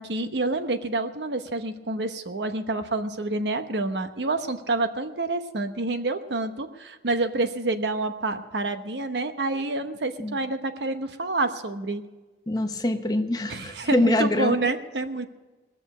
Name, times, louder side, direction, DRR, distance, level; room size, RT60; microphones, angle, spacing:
voice 1, 0.0-12.0 13.5-15.3, right 2 dB, 75° right, 8 dB, 1.0 m, -28 dB
voice 2, 12.5-14.6, left 1 dB, 20° left, 6 dB, 0.9 m, -24 dB
20.0 x 7.0 x 8.1 m, 1.2 s
head